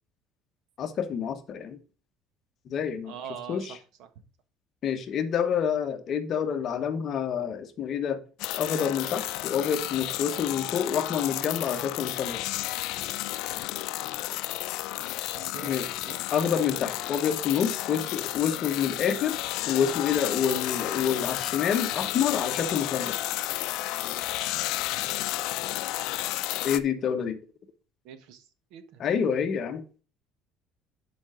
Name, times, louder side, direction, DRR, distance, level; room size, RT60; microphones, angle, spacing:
voice 1, 0.8-1.8 2.7-3.1 3.5-3.8 4.8-8.2 8.6-12.5 15.6-15.9 16.3-19.4 19.7-23.3 26.6-27.4 29.0-29.8, left 7 dB, 40° left, 1.1 m, -28 dB
voice 2, 3.1-3.6 15.3-15.7 16.0-16.2 28.0-28.4 28.7-29.0, right 8 dB, 70° right, 1.3 m, -42 dB
sound 1, 8.4-26.8, left 16 dB, 70° left, 0.5 m, -32 dB
11.0 x 5.0 x 3.8 m
cardioid pair, 155°, 0 cm